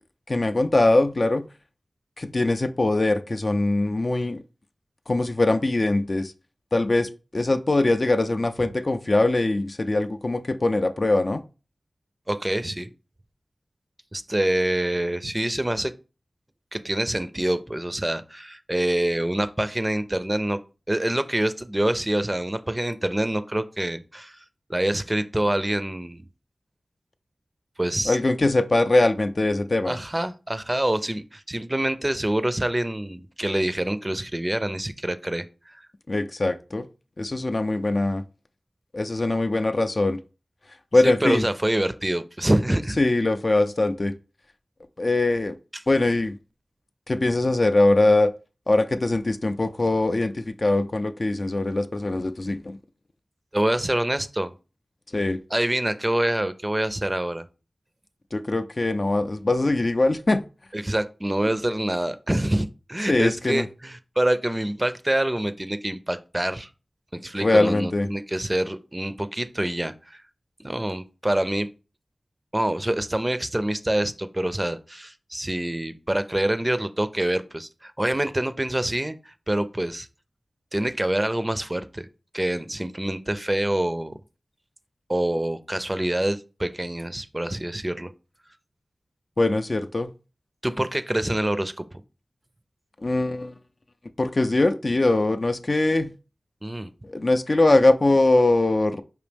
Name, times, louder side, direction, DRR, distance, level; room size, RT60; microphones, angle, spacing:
voice 1, 0.3-1.5 2.2-4.4 5.1-6.3 6.7-11.4 28.1-30.0 36.1-36.9 37.2-38.2 38.9-40.2 40.9-41.4 43.0-44.1 45.0-45.6 45.9-46.4 47.1-48.3 48.7-52.8 55.1-55.4 58.3-60.4 63.1-63.6 67.4-68.1 89.4-90.1 93.0-93.6 94.2-96.1 97.0-99.0, left 2 dB, 55° left, 8 dB, 0.3 m, -22 dB
voice 2, 12.3-12.9 14.1-15.9 16.7-20.6 20.9-24.4 24.7-26.2 27.8-28.2 29.8-35.4 35.7-35.9 41.0-43.0 53.5-54.5 55.5-57.5 60.7-66.7 67.1-70.2 70.6-71.7 72.5-80.1 80.7-82.1 82.3-84.1 85.1-88.1 90.6-91.9 96.6-96.9, right 1 dB, 25° right, 12 dB, 0.5 m, -26 dB
5.1 x 2.6 x 3.4 m, 0.33 s
cardioid pair, 40°, 0 cm